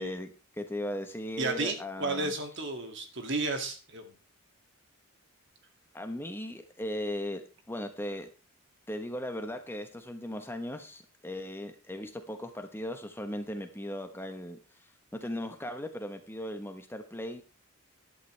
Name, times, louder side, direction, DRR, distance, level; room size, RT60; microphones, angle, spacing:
voice 1, 0.0-2.3 5.9-7.4 7.7-8.3 8.9-17.4, left 1 dB, 10° left, 7 dB, 1.1 m, -37 dB
voice 2, 1.4-4.1, right 3 dB, 55° right, 5 dB, 2.4 m, -33 dB
14.0 x 11.5 x 3.3 m, 0.33 s
head